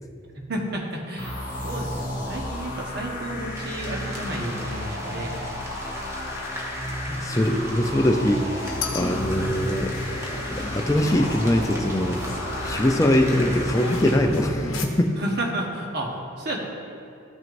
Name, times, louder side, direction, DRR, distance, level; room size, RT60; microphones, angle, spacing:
voice 1, 0.3-1.4 1.6-5.3 9.4-9.7 15.2-16.6, right 1 dB, 50° right, 0 dB, 1.1 m, -31 dB
sound 1, 1.2-14.7, left 1 dB, 40° left, 2.0 m, -33 dB
sound 2, 3.5-14.2, equal, 15° right, 1.0 m, -39 dB
voice 2, 7.1-10.0 10.5-12.2 12.6-15.1, left 1 dB, 15° left, 4 dB, 0.5 m, -22 dB
sound 3, 8.6-14.9, left 3 dB, 75° left, 0.8 m, -35 dB
13.5 x 6.2 x 2.6 m, 2.6 s
head